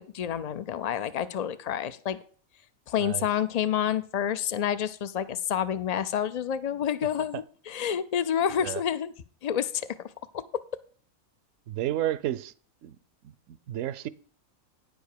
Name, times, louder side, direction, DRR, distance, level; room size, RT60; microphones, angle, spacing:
voice 1, 0.0-2.2 2.9-9.1 9.4-10.1, left 9 dB, 80° left, 0.3 m, -29 dB
voice 2, 11.7-12.5 12.8-13.0 13.5-14.1, right 13 dB, 75° right, 0.9 m, -31 dB
10.0 x 5.2 x 6.6 m
omnidirectional pair, 1.4 m